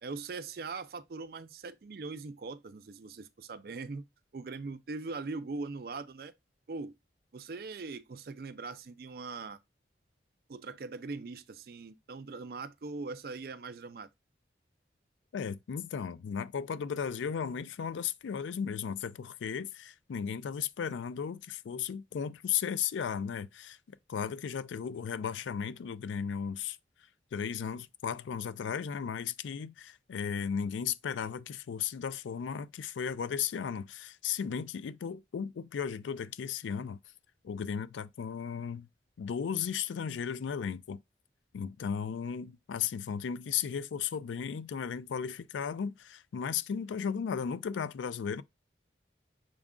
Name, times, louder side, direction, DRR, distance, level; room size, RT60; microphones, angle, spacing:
voice 1, 0.0-4.0 4.3-6.3 6.7-7.0 7.3-9.6 10.5-14.1, right 3 dB, 55° right, 0.4 m, -41 dB
voice 2, 15.3-26.8 27.3-37.0 37.4-38.9 39.2-41.0 41.5-48.4, left 7 dB, 90° left, 0.3 m, -35 dB
6.2 x 2.4 x 3.6 m
head